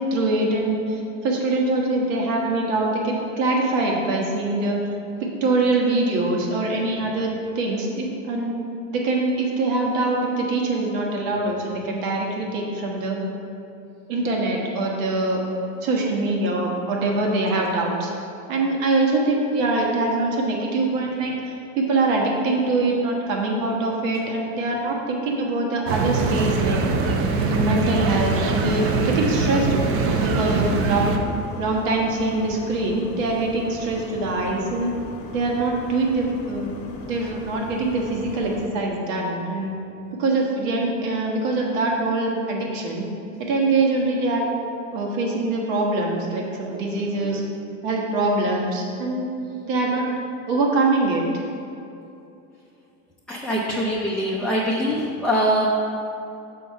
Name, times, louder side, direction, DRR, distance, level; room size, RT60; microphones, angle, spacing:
voice 1, 0.1-4.8 5.2-7.3 7.5-8.5 8.9-13.2 14.1-15.4 15.8-18.1 18.5-21.3 21.8-26.8 27.3-31.2 31.6-34.9 35.3-36.7 37.1-39.7 40.2-43.1 43.4-44.5 44.9-47.4 47.8-49.3 49.6-50.1 50.5-51.2 53.7-53.8, right 2 dB, 80° right, -1 dB, 1.5 m, -23 dB
sound 1, 25.9-31.2, right 4 dB, 35° right, 0.6 m, -22 dB
sound 2, 28.9-38.7, left 1 dB, 50° left, 0.9 m, -38 dB
voice 2, 53.3-55.7, equal, 5° left, -6 dB, 0.5 m, -23 dB
6.5 x 3.9 x 5.7 m, 2.8 s
supercardioid pair, 130°, 38 cm